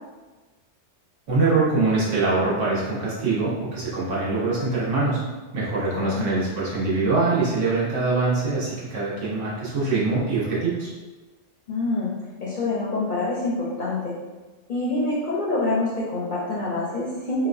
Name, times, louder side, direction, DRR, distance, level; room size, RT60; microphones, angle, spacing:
voice 1, 1.3-5.2 5.5-10.9, right 3 dB, 75° right, -7 dB, 1.4 m, -23 dB
voice 2, 6.0-6.3 11.7-12.1 12.4-14.2 14.7-17.5, left 2 dB, 55° left, -6 dB, 0.5 m, -26 dB
4.1 x 2.2 x 2.5 m, 1.2 s
omnidirectional pair, 1.3 m